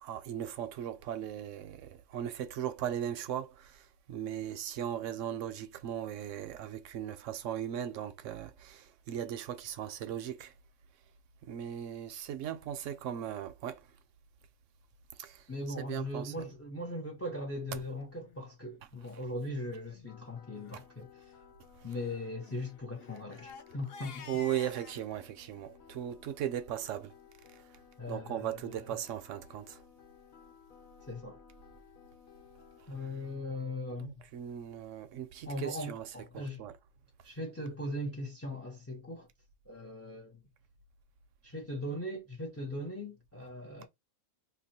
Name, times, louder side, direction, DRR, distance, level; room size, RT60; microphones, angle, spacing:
voice 1, 0.0-3.8 4.1-10.5 11.4-13.8 15.2-15.4 15.8-16.5 24.3-27.1 28.1-29.8 34.0-36.1 36.3-36.7, right 10 dB, 70° right, 0.9 m, -38 dB
voice 2, 15.5-21.2 21.8-24.4 28.0-28.8 31.1-31.4 32.9-34.1 35.4-36.6 37.2-39.3 39.7-40.4 41.4-43.9, left 1 dB, 20° left, 0.4 m, -39 dB
Crying sobbing, 18.1-18.4 19.1-19.2 19.4-19.5 19.9-20.1 20.5-20.8 21.9-25.0, left 5 dB, 60° left, 0.7 m, -50 dB
sound 1, 20.1-33.8, left 9 dB, 90° left, 1.4 m, -59 dB
2.9 x 2.1 x 4.1 m
omnidirectional pair, 1.4 m